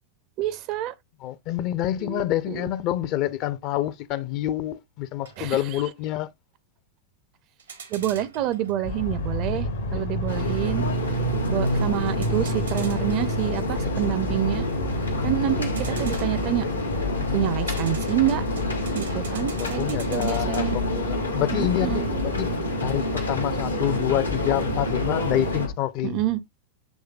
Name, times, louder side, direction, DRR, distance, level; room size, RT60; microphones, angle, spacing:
voice 1, 0.4-0.9 2.0-2.7 5.4-5.8 7.9-9.7 9.9-10.8 11.5-14.6 15.2-16.7 17.3-18.4 18.9-20.8 21.5-22.0 26.0-26.4, right 12 dB, 40° right, 0.4 m, -27 dB
voice 2, 1.2-6.3 9.9-10.0 19.4-22.5 22.8-26.2, left 13 dB, 40° left, 0.4 m, -27 dB
sound 1, 5.2-5.8 7.6-8.9 12.1-13.6 15.7-16.7 17.5-21.2, right 6 dB, 70° right, 0.8 m, -44 dB
sound 2, 8.8-25.7, left 2 dB, 65° left, 0.7 m, -29 dB
sound 3, 10.3-25.7, equal, 85° left, 1.0 m, -30 dB
7.2 x 3.1 x 2.3 m
figure-of-eight pair, 90°, 0 cm